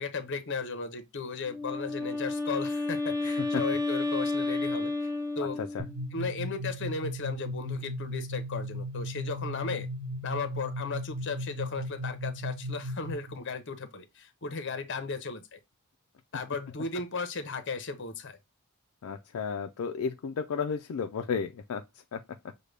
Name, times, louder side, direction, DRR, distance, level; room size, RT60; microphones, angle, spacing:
voice 1, 0.0-4.9 5.4-5.6 6.1-9.9 10.2-15.6 16.3-18.4, left 4 dB, 55° left, 0.8 m, -36 dB
Wind instrument woodwind instrument, 1.4-6.0, left 2 dB, 15° right, 1.3 m, -31 dB
voice 2, 5.4-5.9 19.0-21.9 22.1-22.2, left 6 dB, 70° left, 0.4 m, -33 dB
sound 1, 5.8-13.4, equal, 45° right, 1.0 m, -36 dB
6.5 x 2.2 x 3.3 m
head